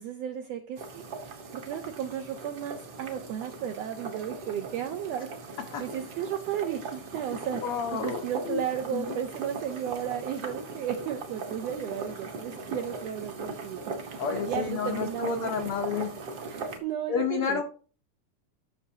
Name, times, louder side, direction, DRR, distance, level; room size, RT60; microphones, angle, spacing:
voice 1, 0.0-15.5 16.5-17.6, right 9 dB, 85° right, 6 dB, 1.4 m, -34 dB
sound 1, 0.8-16.8, right 4 dB, 60° right, 1.0 m, -39 dB
voice 2, 7.6-8.6 8.9-9.1 14.2-16.1 17.1-17.6, left 7 dB, 85° left, 3 dB, 1.2 m, -30 dB
13.0 x 6.2 x 2.8 m, 0.39 s
omnidirectional pair, 3.6 m